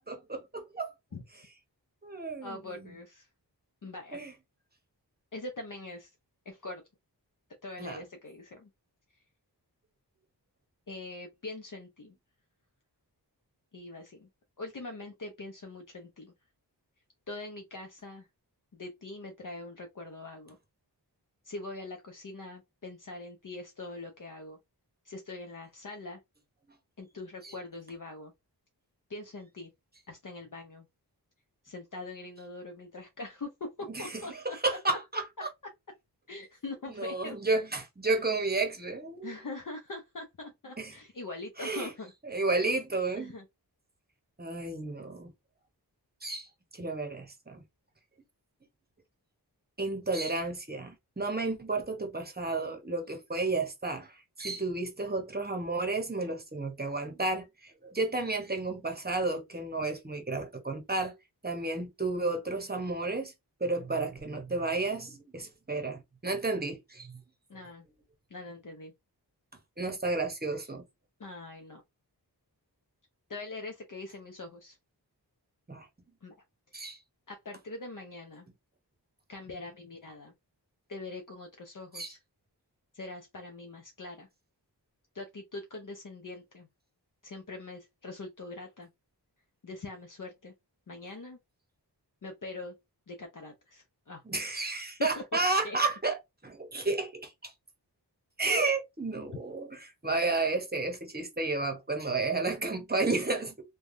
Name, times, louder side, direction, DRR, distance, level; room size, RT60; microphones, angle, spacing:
voice 1, 0.1-0.9 2.0-2.9 4.1-4.3 7.8-8.0 27.4-27.5 33.9-35.2 37.0-39.3 40.8-40.9 41.6-41.9 42.2-43.3 44.4-45.3 46.2-46.5 46.7-47.6 49.8-61.1 61.4-63.3 63.6-67.2 69.8-70.8 75.7-75.9 76.7-77.0 81.9-82.1 94.3-97.5 98.4-103.5, right 3 dB, 25° right, 0.8 m, -32 dB
voice 2, 2.4-3.3 3.8-4.2 5.3-6.1 6.5-6.8 7.6-8.7 10.9-12.1 13.7-14.3 14.6-16.3 17.3-18.3 18.7-20.6 21.4-24.6 25.0-26.2 27.0-28.3 29.1-29.7 30.1-30.9 31.6-34.8 36.3-37.4 39.2-42.4 43.2-43.4 67.5-67.9 68.3-68.9 71.2-71.8 73.3-74.8 76.2-76.3 77.3-78.5 79.3-80.3 80.9-82.2 82.9-84.3 85.1-86.7 87.2-88.9 89.6-90.5 90.9-91.4 92.2-92.7 93.1-94.2 95.2-95.3 95.6-95.8, left 2 dB, 50° left, 0.6 m, -43 dB
3.3 x 2.2 x 2.5 m
wide cardioid pair, 60°, 41 cm